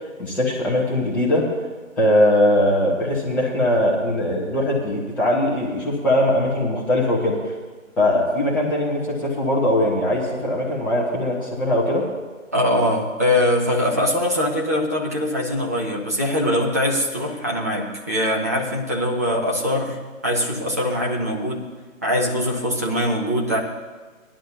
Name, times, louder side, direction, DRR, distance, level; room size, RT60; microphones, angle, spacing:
voice 1, 0.2-1.5 2.0-7.5 8.0-12.1, left 1 dB, 5° left, -7 dB, 1.1 m, -20 dB
voice 2, 12.5-21.6 22.0-23.6, left 1 dB, 10° right, -3 dB, 0.7 m, -22 dB
19.5 x 11.5 x 2.8 m, 1.4 s
figure-of-eight pair, 150°, 42 cm